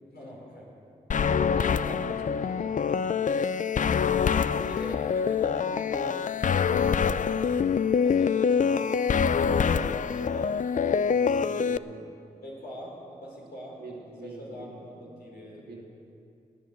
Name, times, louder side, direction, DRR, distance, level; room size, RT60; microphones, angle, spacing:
voice 1, 0.1-0.7 3.9-6.2 6.5-7.4 7.9-9.0 9.5-10.0 10.3-10.6 12.4-13.8 14.2-15.8, left 1 dB, 75° left, -3 dB, 4.5 m, -42 dB
sound 1, 1.1-11.8, left 6 dB, 55° left, 0.5 m, -25 dB
voice 2, 1.3-3.1 9.8-10.0 10.8-12.1 13.7-15.1 15.5-15.9, right 3 dB, 80° right, 0 dB, 2.3 m, -44 dB
19.5 x 8.7 x 7.4 m, 2.6 s
cardioid pair, 45°, 16 cm